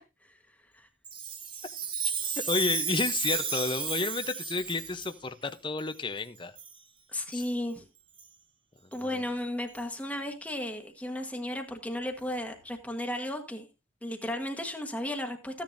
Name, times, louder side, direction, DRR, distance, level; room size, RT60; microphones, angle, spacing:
Chime, 1.0-5.1 5.8-5.9 6.6-6.8 7.3-7.5 8.2-8.3 8.9-9.0 9.7-9.8, right 7 dB, 25° right, 1.3 m, -34 dB
voice 1, 2.5-6.5 7.3-7.4 9.0-9.2, left 3 dB, 25° left, 10 dB, 0.7 m, -31 dB
voice 2, 7.1-7.8 8.9-13.7 14.0-15.6, left 1 dB, 5° left, 3 dB, 1.3 m, -34 dB
15.0 x 10.5 x 2.6 m, 0.27 s
head